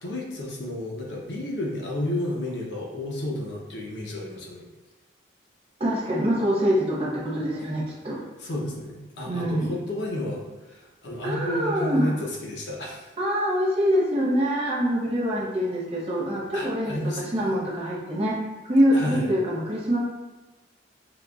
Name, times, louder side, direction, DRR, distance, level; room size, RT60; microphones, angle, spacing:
voice 1, 0.0-4.7 8.4-13.1 16.5-17.4 18.9-19.3, left 1 dB, 70° left, -2 dB, 0.7 m, -31 dB
voice 2, 5.8-8.2 9.3-9.7 11.2-12.1 13.2-18.4 18.6-20.0, equal, 30° right, -5 dB, 0.7 m, -24 dB
3.8 x 2.8 x 2.3 m, 1.1 s
head